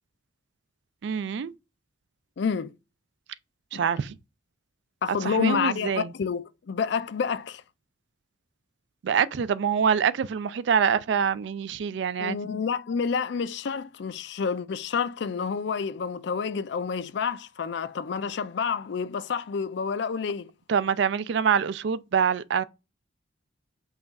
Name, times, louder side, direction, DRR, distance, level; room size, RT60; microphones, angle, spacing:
voice 1, 1.0-1.5 3.7-4.2 5.2-6.1 9.0-12.4 20.7-22.6, right 7 dB, 60° right, 0.3 m, -25 dB
voice 2, 2.4-2.7 3.7-3.9 5.0-7.6 12.2-20.5, left 6 dB, 60° left, 0.4 m, -29 dB
5.6 x 2.4 x 4.0 m
head